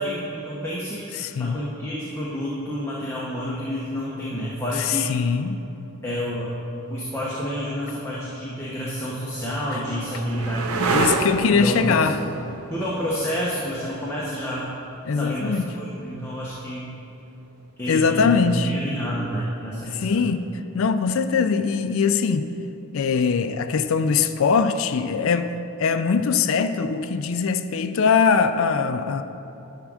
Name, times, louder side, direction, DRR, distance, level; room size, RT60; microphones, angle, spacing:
voice 1, 0.0-5.1 6.0-6.5 6.9-11.0 11.5-12.1 12.7-14.7 15.1-17.0 17.8-20.2, equal, 10° left, -7 dB, 0.8 m, -29 dB
voice 2, 1.2-1.6 4.8-5.6 10.9-12.2 15.1-15.7 17.9-18.7 19.9-22.5 22.9-25.5 25.8-29.2, left 5 dB, 65° left, 10 dB, 0.4 m, -22 dB
sound 1, 8.6-16.2 18.5-19.1, right 3 dB, 75° right, 0.6 m, -30 dB
10.5 x 3.6 x 6.2 m, 2.9 s
head